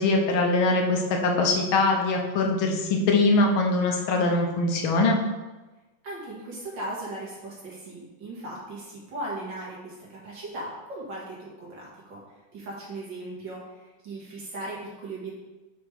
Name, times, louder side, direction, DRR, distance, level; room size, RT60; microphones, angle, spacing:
voice 1, 0.0-5.2, left 2 dB, 85° left, 1 dB, 1.7 m, -22 dB
voice 2, 6.0-12.2 12.5-15.3, right 1 dB, 65° right, -5 dB, 2.3 m, -38 dB
6.3 x 3.4 x 4.8 m, 1.1 s
omnidirectional pair, 2.2 m